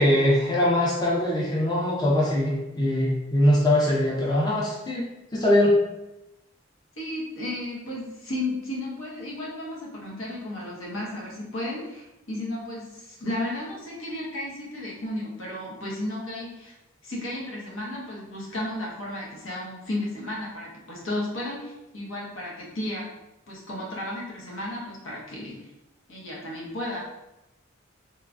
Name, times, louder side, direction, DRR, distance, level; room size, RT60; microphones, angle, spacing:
voice 1, 0.0-5.0 5.3-5.7, left 1 dB, 20° left, -5 dB, 0.5 m, -22 dB
voice 2, 7.0-16.7 17.0-23.1 23.5-25.7 26.1-27.0, left 1 dB, 70° left, -3 dB, 0.8 m, -33 dB
3.0 x 2.2 x 2.5 m, 0.95 s
head